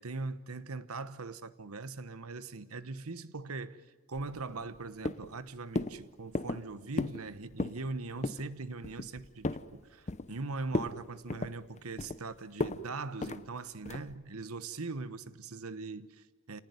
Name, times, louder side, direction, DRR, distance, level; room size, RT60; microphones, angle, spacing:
voice 1, 0.0-3.8 4.1-16.6, right 3 dB, 80° right, 1.2 m, -41 dB
sound 1, 4.1-4.8 5.0-5.4 5.8-6.0 6.3-6.6 7.0-7.2 7.5-7.8 8.2-8.5 8.8-9.7 10.1-10.4 10.7-11.0 11.3-12.2 12.6-12.8 13.2-13.4 13.9-14.1, left 2 dB, 30° left, 0.8 m, -34 dB
28.5 x 19.0 x 9.6 m
head